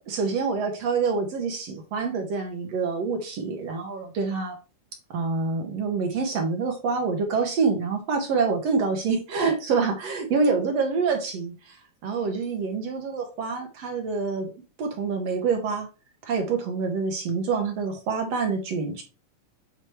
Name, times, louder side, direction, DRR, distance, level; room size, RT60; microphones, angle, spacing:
voice 1, 0.1-4.6 5.1-11.8 12.0-14.5 14.8-15.9 16.2-19.0, right 4 dB, 65° right, 3 dB, 1.7 m, -26 dB
8.5 x 2.9 x 4.5 m, 0.32 s
omnidirectional pair, 4.1 m